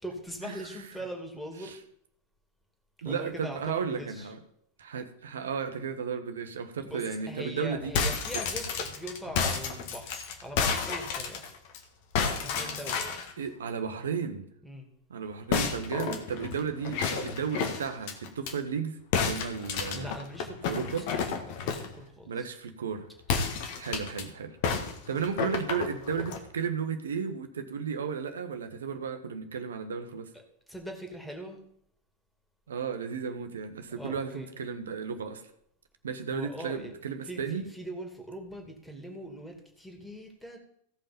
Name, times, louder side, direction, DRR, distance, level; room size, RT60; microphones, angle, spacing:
voice 1, 0.0-1.8 3.0-4.3 6.8-11.4 12.3-13.5 14.6-14.9 19.9-22.5 30.3-30.4 30.7-31.6 34.0-34.5 36.3-37.0 37.2-40.6, equal, 5° left, 3 dB, 2.4 m, -41 dB
voice 2, 3.0-4.4 4.8-7.9 13.4-14.5 15.1-19.0 19.2-20.1 20.7-21.0 22.3-23.1 23.8-24.6 25.1-30.3 32.7-35.4 36.0-37.6, right 6 dB, 65° right, 8 dB, 1.3 m, -34 dB
sound 1, 7.8-11.8 12.1-13.3 15.5-18.5 19.1-21.9 23.2-24.2 24.6-26.4, left 6 dB, 50° left, 1.6 m, -31 dB
16.0 x 5.6 x 5.3 m, 0.72 s
figure-of-eight pair, 90°, 0 cm